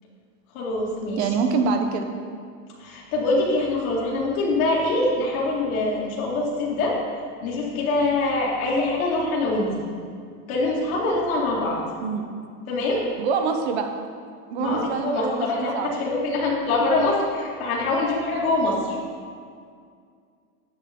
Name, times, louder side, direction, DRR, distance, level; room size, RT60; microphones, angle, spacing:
voice 1, 0.5-1.2 2.8-6.9 7.4-9.7 10.5-11.8 12.7-13.0 14.6-19.0, left 2 dB, 65° left, -5 dB, 2.4 m, -24 dB
voice 2, 1.2-2.0 12.0-12.2 13.2-13.9 14.5-16.0 16.8-16.9, right 5 dB, 45° right, 5 dB, 0.9 m, -25 dB
8.9 x 8.3 x 3.7 m, 2.2 s
supercardioid pair, 175°, 45 cm